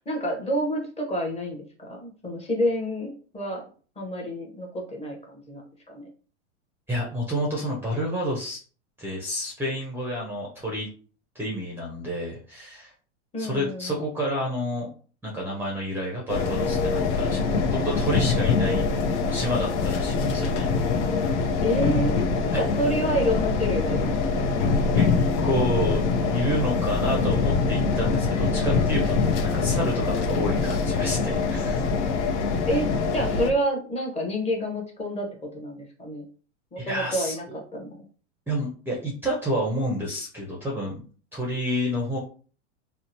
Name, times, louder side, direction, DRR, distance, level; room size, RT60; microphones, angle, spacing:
voice 1, 0.1-3.6 4.0-6.1 13.3-14.1 21.6-22.2 22.5-24.6 32.7-32.9 33.1-35.3 35.5-36.3 36.7-38.1, equal, 15° left, 0 dB, 0.8 m, -28 dB
voice 2, 6.9-8.6 9.0-10.9 11.3-12.9 13.4-14.9 15.2-18.8 19.3-20.7 25.0-25.1 25.4-31.8 36.8-37.6 38.5-41.0 41.3-42.2, equal, 5° right, -3 dB, 0.5 m, -29 dB
sound 1, 16.3-33.5, left 4 dB, 70° left, 0.6 m, -24 dB
2.7 x 2.0 x 2.8 m, 0.40 s
hypercardioid pair, 115°, 36 cm